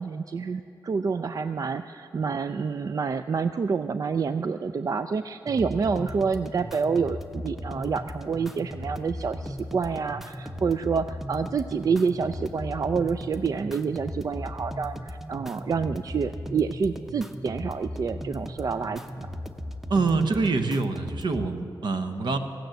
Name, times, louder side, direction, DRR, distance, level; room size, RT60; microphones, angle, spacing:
voice 1, 0.0-19.3, right 5 dB, 45° right, 11 dB, 0.4 m, -28 dB
sound 1, 5.5-21.5, equal, 5° right, 0.7 m, -37 dB
voice 2, 19.9-22.4, right 3 dB, 70° right, 7 dB, 1.0 m, -25 dB
15.5 x 9.3 x 7.8 m, 2.5 s
cardioid pair, 80°, 8 cm